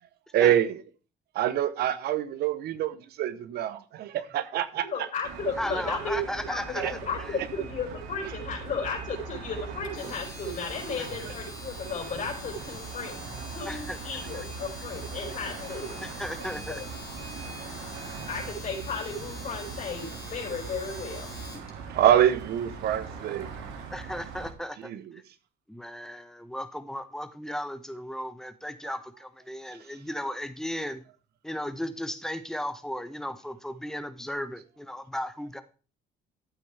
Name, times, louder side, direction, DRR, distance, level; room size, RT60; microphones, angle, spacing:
voice 1, 0.3-0.8 1.3-4.9 6.8-6.9 21.9-23.5 24.8-25.0, right 11 dB, 70° right, 1.0 m, -25 dB
voice 2, 4.8-16.0 16.7-16.9 18.3-21.3, left 4 dB, 50° left, 4.3 m, -34 dB
sound 1, 5.2-24.5, right 5 dB, 90° right, 2.4 m, -41 dB
voice 3, 5.6-7.4 11.0-11.1 13.6-14.0 14.3-14.5 16.0-16.8 23.9-25.2 25.7-31.0 31.4-35.6, equal, 5° left, 1.0 m, -35 dB
Domestic sounds home sounds, 9.8-21.7, left 4 dB, 25° left, 3.7 m, -45 dB
13.0 x 8.0 x 3.4 m
cardioid pair, 110°, 17 cm